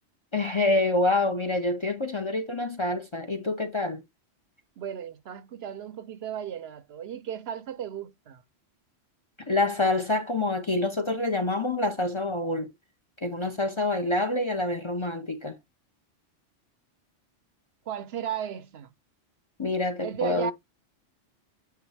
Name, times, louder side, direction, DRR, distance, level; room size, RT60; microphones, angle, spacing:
voice 1, 0.3-4.0 9.5-12.7 13.2-15.6 19.6-20.5, left 2 dB, 30° left, 0.6 m, -27 dB
voice 2, 4.8-8.4 17.9-18.9 20.0-20.5, right 9 dB, 65° right, 0.8 m, -35 dB
9.1 x 3.6 x 3.3 m
omnidirectional pair, 1.2 m